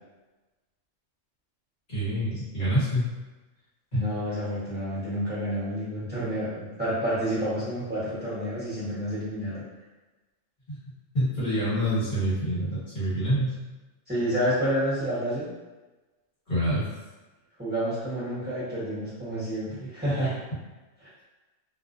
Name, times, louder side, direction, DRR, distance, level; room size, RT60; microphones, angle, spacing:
voice 1, 1.9-3.1 3.9-4.1 10.7-10.8 11.1-13.6 16.5-16.8, equal, 40° left, -12 dB, 1.3 m, -26 dB
voice 2, 3.9-9.6 14.1-15.5 17.6-20.4, equal, 10° right, -11 dB, 1.0 m, -29 dB
2.4 x 2.0 x 2.6 m, 1.2 s
omnidirectional pair, 1.3 m